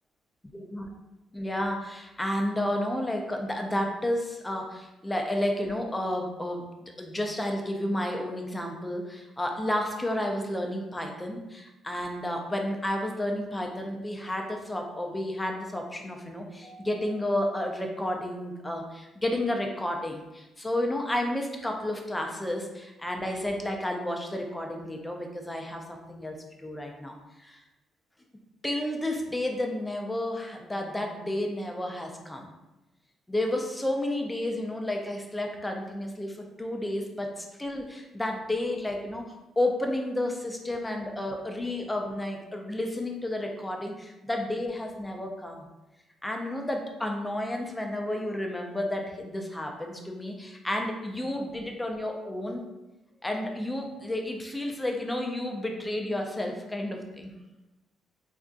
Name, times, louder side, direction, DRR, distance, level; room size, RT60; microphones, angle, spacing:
voice 1, 0.5-0.9 1.3-27.6 28.6-32.5 33.3-45.7 46.2-52.6 53.2-57.3, left 1 dB, 15° left, 2 dB, 0.5 m, -31 dB
3.4 x 2.5 x 2.4 m, 1.0 s
cardioid pair, 90°, 0 cm